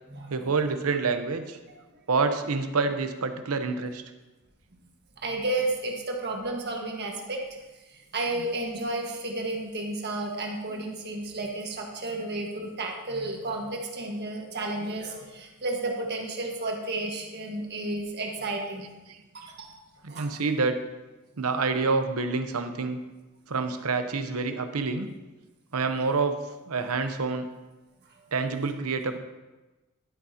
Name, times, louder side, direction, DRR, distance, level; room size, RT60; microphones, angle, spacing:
voice 1, 0.3-1.6 2.1-4.0 8.3-8.5 20.0-20.8 21.4-23.0 23.5-25.1 25.7-26.4 26.7-27.4 28.3-29.2, right 4 dB, 90° right, 8 dB, 0.8 m, -27 dB
voice 2, 5.2-7.4 7.9-18.9 19.3-19.8 20.1-20.4, right 2 dB, 50° right, 1 dB, 1.5 m, -32 dB
11.5 x 9.4 x 2.8 m, 1.1 s
head